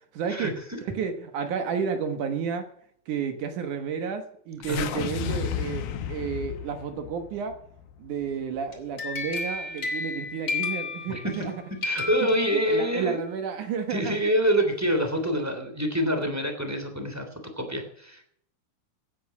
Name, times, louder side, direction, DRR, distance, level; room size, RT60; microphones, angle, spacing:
voice 1, 0.1-2.7 3.1-7.6 8.0-11.5 12.5-14.2, right 6 dB, 65° right, 8 dB, 2.5 m, -31 dB
sound 1, 4.6-8.9, left 8 dB, 75° left, 3.0 m, -33 dB
sound 2, 8.7-11.5 11.8-13.1, left 4 dB, 35° left, 4.3 m, -32 dB
voice 2, 11.8-13.2 13.9-17.3 17.6-18.2, equal, 5° right, 5 dB, 2.6 m, -26 dB
17.0 x 9.6 x 6.1 m, 0.66 s
omnidirectional pair, 4.4 m